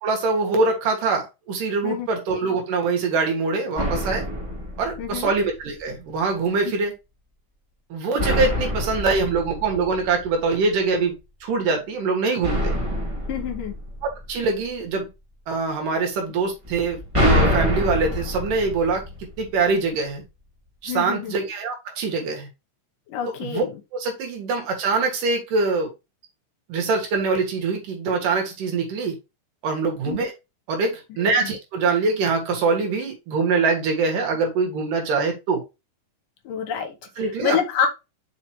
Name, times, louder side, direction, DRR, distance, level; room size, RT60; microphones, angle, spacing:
voice 1, 0.0-4.2 4.8-6.9 7.9-11.2 11.4-12.7 14.0-15.1 15.5-19.0 19.4-20.2 20.8-22.5 23.4-23.6 23.9-25.9 26.7-29.2 29.6-30.3 30.7-35.6 37.2-37.6, right 4 dB, 75° right, 3.3 m, -23 dB
sound 1, 3.8-5.6 8.2-10.6 12.4-14.7 16.7-19.7, equal, 15° right, 1.2 m, -26 dB
voice 2, 5.0-5.3 13.3-13.8 20.9-21.3 23.1-23.8 30.1-30.2 31.4-31.5 36.4-37.9, left 8 dB, 80° left, 2.8 m, -27 dB
5.8 x 5.3 x 3.1 m
omnidirectional pair, 3.9 m